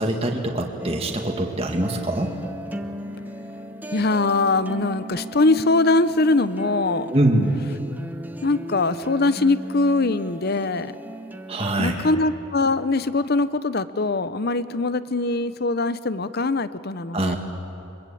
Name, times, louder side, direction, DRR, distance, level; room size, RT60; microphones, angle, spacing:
voice 1, 0.0-2.3 7.1-7.6 11.5-11.9 17.1-17.4, right 1 dB, 30° right, 1 dB, 1.9 m, -23 dB
sound 1, 0.8-11.7, right 1 dB, 10° right, 0.9 m, -36 dB
voice 2, 3.9-7.1 8.4-10.9 11.8-17.4, left 3 dB, 50° left, 14 dB, 0.7 m, -22 dB
24.0 x 22.0 x 8.6 m, 2.9 s
head